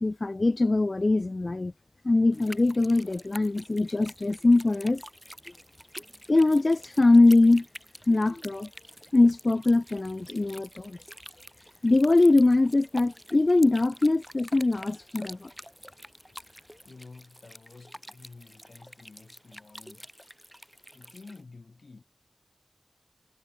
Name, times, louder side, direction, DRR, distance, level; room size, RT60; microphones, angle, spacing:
voice 1, 0.0-1.7 2.0-5.0 6.3-7.7 8.1-8.7 9.1-11.0 11.8-15.5, left 2 dB, 55° left, 0.4 m, -22 dB
sound 1, 2.3-21.4, equal, ahead, 1.8 m, -48 dB
voice 2, 16.8-20.1 20.9-22.0, left 3 dB, 85° left, 5.5 m, -50 dB
wide cardioid pair, 50°, 0 cm